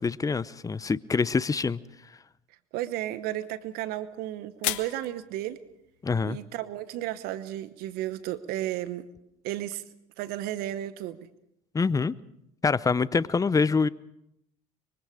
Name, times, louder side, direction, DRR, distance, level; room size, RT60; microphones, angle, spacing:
voice 1, 0.0-1.8 6.0-6.4 11.7-12.1 12.6-13.9, left 4 dB, 20° left, 0.7 m, -25 dB
voice 2, 2.7-5.6 6.2-9.1 9.4-9.8 10.2-11.2, right 14 dB, 65° right, 1.1 m, -33 dB
sound 1, 3.0-8.9, left 17 dB, 70° left, 1.0 m, -41 dB
24.0 x 23.5 x 5.0 m
hypercardioid pair, 70°, 17 cm